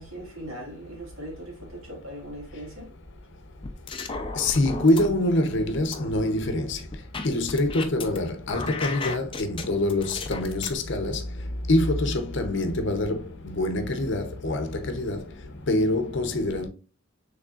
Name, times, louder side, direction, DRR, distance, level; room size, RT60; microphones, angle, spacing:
voice 1, 0.0-2.9, right 1 dB, 75° right, 1.9 m, -40 dB
sound 1, 3.6-5.1 5.5-8.2 8.5-10.7, left 4 dB, 25° left, 0.5 m, -34 dB
voice 2, 4.4-6.8 7.2-11.2 11.7-15.2 15.7-16.7, left 1 dB, 55° left, 0.7 m, -25 dB
6.4 x 3.3 x 2.4 m
head